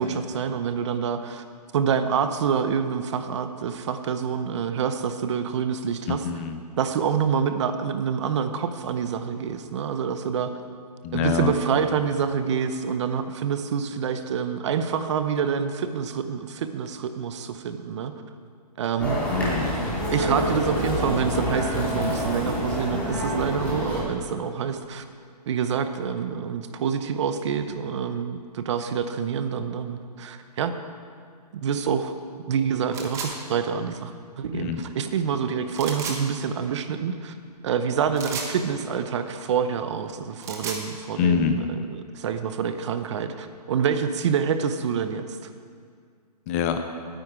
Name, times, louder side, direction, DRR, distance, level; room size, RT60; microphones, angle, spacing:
voice 1, 0.0-1.4 1.7-6.2 6.8-10.5 11.1-18.1 18.8-19.2 20.1-25.0 25.5-30.7 31.5-32.1 32.5-37.4 37.6-45.5, right 7 dB, 45° right, 9 dB, 0.9 m, -27 dB
voice 2, 6.1-6.6 11.0-11.5 19.3-19.7 34.5-34.8 41.2-41.6 46.5-46.8, left 7 dB, 20° left, 7 dB, 0.6 m, -25 dB
sound 1, 19.0-24.0, left 1 dB, 5° left, 3.0 m, -27 dB
sound 2, 32.9-33.3 35.7-36.2 38.1-38.5 40.2-40.8, right 5 dB, 15° right, 1.1 m, -33 dB
19.0 x 9.2 x 4.8 m, 2.1 s
hypercardioid pair, 150°, 21 cm